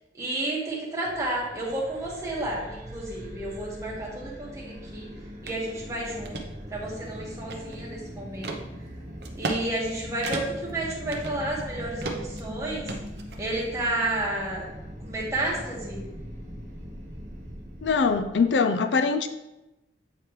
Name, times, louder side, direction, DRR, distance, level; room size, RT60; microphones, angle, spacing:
voice 1, 0.1-5.1 5.4-6.4 6.7-8.5 9.3-12.9 13.4-14.7 15.0-16.0, right 1 dB, 20° right, -5 dB, 1.8 m, -31 dB
sound 1, 1.0-18.5, equal, 45° right, 1.2 m, -41 dB
sound 2, 5.5-5.6 6.0-6.5 7.0-7.9 8.4-8.6 9.2-9.6 9.9-10.0 10.2-10.7 11.1-11.7 12.0-12.4 12.9-13.7, right 3 dB, 65° right, 0.9 m, -34 dB
voice 2, 17.8-19.3, left 4 dB, 85° left, 9 dB, 0.4 m, -23 dB
8.8 x 4.5 x 3.2 m, 0.97 s
head